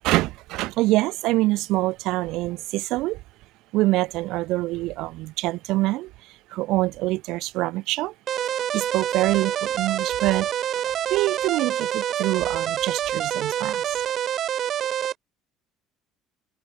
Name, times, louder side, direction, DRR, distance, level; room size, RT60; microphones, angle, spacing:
voice 1, 0.0-3.2 3.7-8.1 8.7-10.5 11.1-13.8, right 19 dB, 65° right, 2.5 m, -25 dB
sound 1, 8.3-15.1, right 10 dB, 35° right, 1.9 m, -27 dB
cardioid pair, 165°, 0 cm